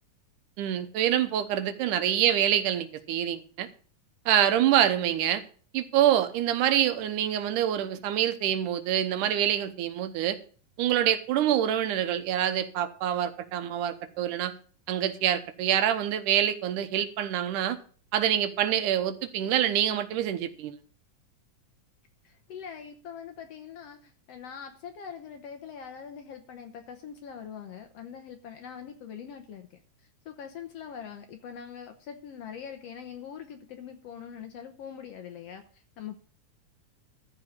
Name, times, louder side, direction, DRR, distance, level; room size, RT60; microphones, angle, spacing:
voice 1, 0.6-3.7 4.3-5.4 5.7-10.4 10.8-14.5 14.9-17.8 18.1-20.8, right 11 dB, 80° right, 2.4 m, -26 dB
voice 2, 22.2-29.8 30.2-36.2, left 8 dB, 65° left, 1.7 m, -43 dB
14.0 x 4.7 x 8.6 m
omnidirectional pair, 3.6 m